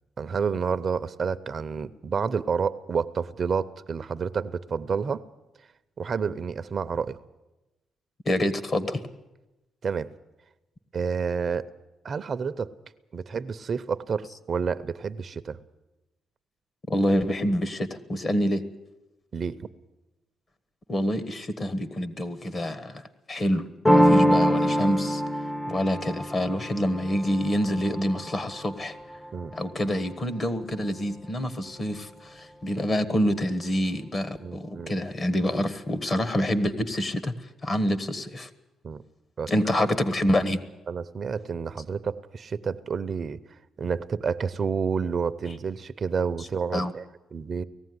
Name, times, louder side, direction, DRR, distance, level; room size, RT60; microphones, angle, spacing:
voice 1, 0.2-5.2 6.0-7.2 9.8-10.1 10.9-11.6 12.0-12.7 13.1-15.6 19.3-19.6 24.0-24.2 29.3-29.5 34.4-34.9 38.8-39.0 39.4-39.5 39.8-39.9 40.9-43.4 43.8-47.0 47.3-47.6, right 6 dB, 45° right, 13 dB, 0.7 m, -29 dB
voice 2, 8.2-9.0 16.9-18.6 20.9-23.0 23.3-25.2 25.7-29.0 29.5-37.3 37.6-38.5 39.5-40.6 45.5-45.6 46.7-46.9, equal, 35° left, 14 dB, 1.4 m, -27 dB
sound 1, 23.8-29.4, equal, 15° left, 0.8 m, -24 dB
18.5 x 14.5 x 9.6 m, 1.0 s
cardioid pair, 90°, 0 cm